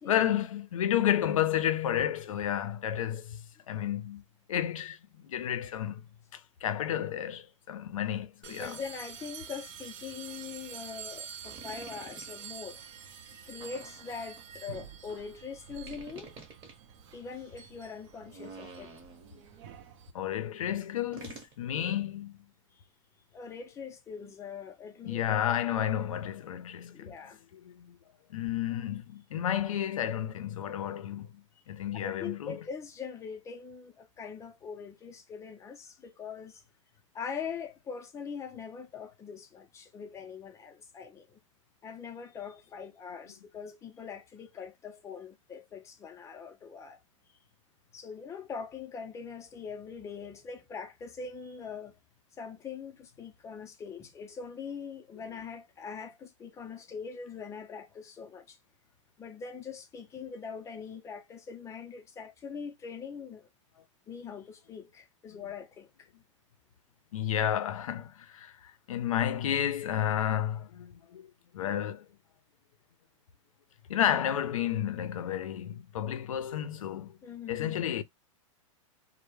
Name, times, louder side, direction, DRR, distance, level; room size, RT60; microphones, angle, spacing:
voice 1, 0.0-4.2 4.5-6.1 6.3-8.8 20.1-22.4 25.0-27.2 27.5-28.0 28.3-32.6 67.1-71.3 71.5-72.1 73.9-77.2 77.5-78.0, left 10 dB, 90° left, 0.4 m, -31 dB
sound 1, 8.4-20.1, right 8 dB, 65° right, 0.6 m, -47 dB
voice 2, 8.5-12.8 13.5-16.3 17.1-18.9 23.3-25.3 26.9-27.4 31.9-36.6 37.1-41.4 41.8-47.0 47.9-52.0 52.4-58.6 59.2-63.5 64.1-66.1 77.2-77.8, left 6 dB, 15° left, 0.4 m, -42 dB
sound 2, 11.4-12.4 13.6-14.4 15.9-16.7 18.2-19.4 21.1-21.5, right 3 dB, 30° right, 0.9 m, -48 dB
2.1 x 2.0 x 3.0 m
hypercardioid pair, 125°, 17 cm